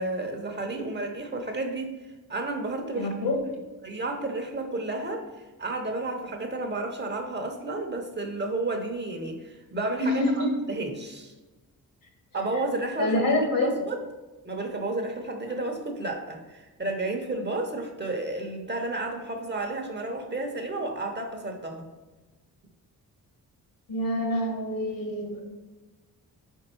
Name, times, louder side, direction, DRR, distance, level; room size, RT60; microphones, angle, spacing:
voice 1, 0.0-1.9 2.3-3.1 3.8-5.3 5.6-11.3 12.3-13.3 13.6-14.0 14.4-21.9, right 2 dB, 30° right, 3 dB, 0.9 m, -32 dB
voice 2, 2.9-3.4 10.0-10.5 13.0-13.7 23.9-25.4, left 1 dB, 65° left, 1 dB, 1.6 m, -26 dB
4.7 x 4.5 x 4.4 m, 1.2 s
cardioid pair, 90°, 37 cm